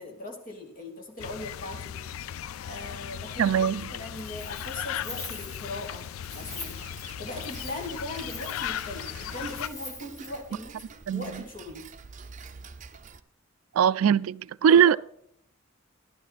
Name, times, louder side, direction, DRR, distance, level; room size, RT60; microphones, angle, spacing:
voice 1, 0.0-2.0 2.3-6.1 6.3-6.8 7.2-11.9 14.7-14.8, left 2 dB, 40° left, 2.7 m, -40 dB
sound 1, 1.2-9.7, left 10 dB, 80° left, 0.3 m, -37 dB
voice 2, 3.4-3.9 11.1-11.2 13.8-15.0, right 8 dB, 85° right, 0.3 m, -21 dB
Wind, 4.0-10.5, left 2 dB, 15° left, 1.7 m, -45 dB
Tick-tock, 6.4-13.2, right 5 dB, 35° right, 0.6 m, -47 dB
12.0 x 11.5 x 4.2 m
head